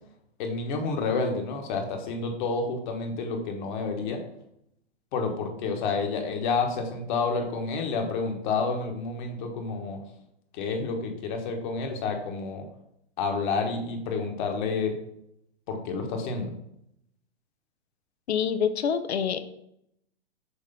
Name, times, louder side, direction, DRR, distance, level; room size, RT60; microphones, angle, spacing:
voice 1, 0.4-4.2 5.1-10.0 10.5-12.6 13.2-14.9 15.7-16.5, left 4 dB, 45° left, 3 dB, 1.4 m, -29 dB
voice 2, 18.3-19.4, left 7 dB, 75° left, 11 dB, 0.8 m, -26 dB
6.5 x 3.0 x 5.2 m, 0.75 s
hypercardioid pair, 125°, 33 cm